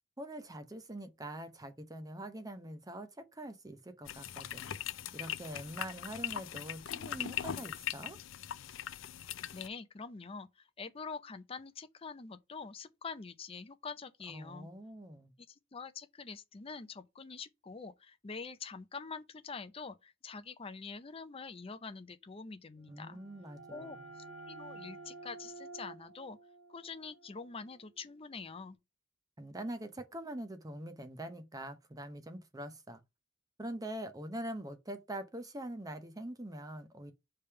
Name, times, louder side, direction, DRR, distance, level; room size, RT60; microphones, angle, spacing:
voice 1, 0.2-4.7 5.1-8.2 14.3-15.3 22.9-24.1 29.4-33.0 33.6-37.1, right 1 dB, 20° right, 0.8 m, -44 dB
sound 1, 4.1-9.7, left 10 dB, 80° left, 0.4 m, -40 dB
voice 2, 9.5-14.7 15.7-23.2 23.7-24.0 24.5-26.4 26.7-28.8, left 4 dB, 30° left, 0.5 m, -45 dB
sound 2, 22.9-28.4, right 3 dB, 80° right, 1.2 m, -51 dB
5.1 x 3.4 x 5.6 m
head